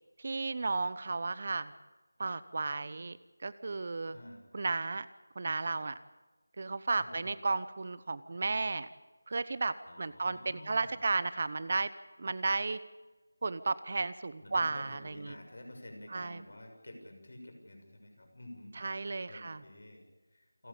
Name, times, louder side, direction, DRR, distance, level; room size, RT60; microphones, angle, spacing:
voice 1, 0.2-1.7 2.2-3.2 3.4-4.2 4.5-5.1 5.4-6.0 6.6-8.9 9.3-11.9 12.2-12.8 13.4-15.4 16.1-16.4 18.8-19.6, right 3 dB, 40° right, 16 dB, 0.9 m, -33 dB
voice 2, 4.1-4.4 6.9-7.3 9.9-11.0 14.4-20.7, left 1 dB, 60° left, 5 dB, 6.5 m, -50 dB
28.0 x 14.5 x 8.7 m, 1.2 s
figure-of-eight pair, 165°, 0 cm